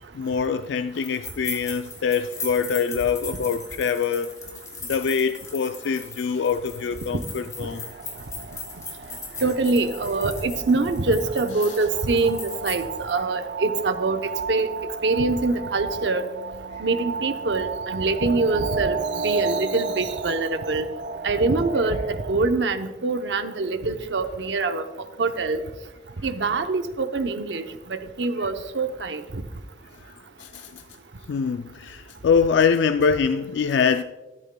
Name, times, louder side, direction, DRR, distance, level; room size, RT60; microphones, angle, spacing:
voice 1, 0.1-4.3 4.9-7.9 11.6-11.8 30.4-30.8 31.3-34.0, left 6 dB, 85° left, 0.3 m, -24 dB
sound 1, 1.0-13.1, left 3 dB, 20° left, 2.3 m, -38 dB
sound 2, 7.6-22.4, right 4 dB, 55° right, 0.3 m, -33 dB
voice 2, 9.4-14.2 14.5-14.7 15.0-16.3 16.8-19.0 19.2-20.9 21.2-24.8 25.2-25.6 26.2-27.6 27.9-29.2, right 3 dB, 85° right, 0.7 m, -24 dB
13.0 x 12.5 x 2.2 m
head